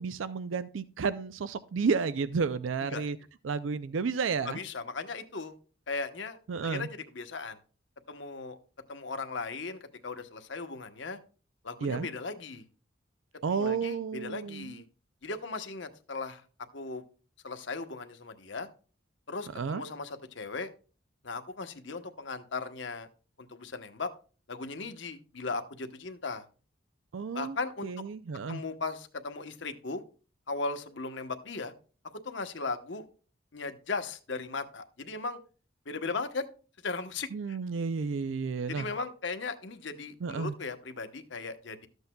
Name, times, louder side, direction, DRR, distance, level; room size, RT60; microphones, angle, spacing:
voice 1, 0.0-3.2 3.4-4.6 6.5-6.9 11.8-12.1 13.4-14.8 19.5-19.8 27.1-27.6 27.8-28.6 37.3-38.9 40.2-40.5, right 5 dB, 85° right, 14 dB, 0.4 m, -31 dB
voice 2, 4.4-5.5 5.9-7.6 8.1-8.6 8.9-11.2 11.6-12.6 13.5-14.8 15.2-16.4 16.7-17.0 17.4-18.7 19.3-20.7 21.2-23.1 23.4-24.1 24.5-26.4 27.3-27.9 28.5-30.0 30.5-31.7 32.1-33.0 33.5-35.4 35.9-36.5 36.8-37.6 38.7-41.9, left 3 dB, 75° left, 8 dB, 1.0 m, -37 dB
13.5 x 8.0 x 2.2 m, 0.36 s
head